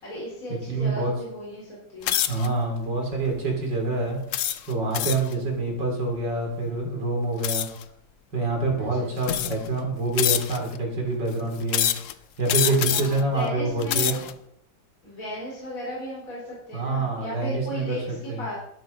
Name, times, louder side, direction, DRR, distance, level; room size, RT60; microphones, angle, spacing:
voice 1, 0.0-2.1 8.8-9.4 12.6-14.2 15.0-18.6, equal, 45° left, -5 dB, 4.4 m, -36 dB
voice 2, 0.7-1.1 2.3-4.2 4.7-7.7 8.3-11.9 12.4-14.2 16.7-18.4, right 2 dB, 70° right, 0 dB, 4.1 m, -26 dB
sound 1, 2.0-2.5 3.1-3.4 4.3-5.3 7.4-7.8 8.7-8.8 9.2-9.7 10.2-10.8 11.7-12.1 12.5-13.2 13.7-14.3, left 11 dB, 75° left, 0.7 m, -26 dB
12.5 x 11.5 x 4.0 m, 0.71 s
omnidirectional pair, 2.0 m